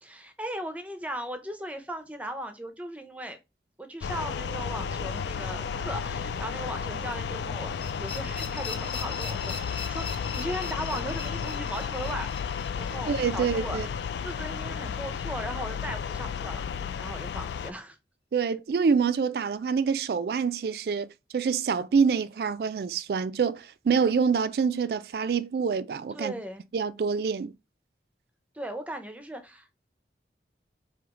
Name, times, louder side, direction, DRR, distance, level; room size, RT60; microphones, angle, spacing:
voice 1, 0.0-3.4 3.8-12.3 12.7-13.8 14.2-16.6 17.0-18.0 26.1-26.6 28.5-29.7, right 1 dB, 10° right, 0.6 m, -37 dB
sound 1, 4.0-17.7, left 6 dB, 75° left, 0.3 m, -33 dB
sound 2, 7.8-14.6, left 5 dB, 30° left, 1.0 m, -41 dB
voice 2, 13.1-13.9 18.3-21.1 21.3-26.3 26.7-27.5, right 6 dB, 60° right, 0.3 m, -26 dB
4.8 x 2.8 x 3.0 m
head